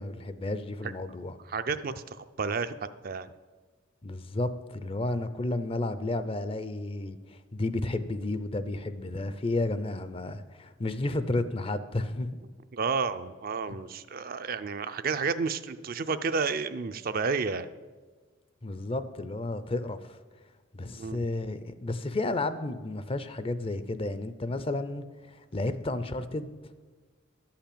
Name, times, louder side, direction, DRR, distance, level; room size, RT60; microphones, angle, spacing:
voice 1, 0.0-1.3 4.0-12.3 13.7-13.8 18.6-20.2 20.7-26.5, left 2 dB, 30° left, 12 dB, 0.5 m, -32 dB
voice 2, 1.5-3.3 12.7-17.7 20.9-21.2, right 5 dB, 45° right, 11 dB, 0.5 m, -31 dB
12.0 x 5.8 x 8.6 m, 1.4 s
head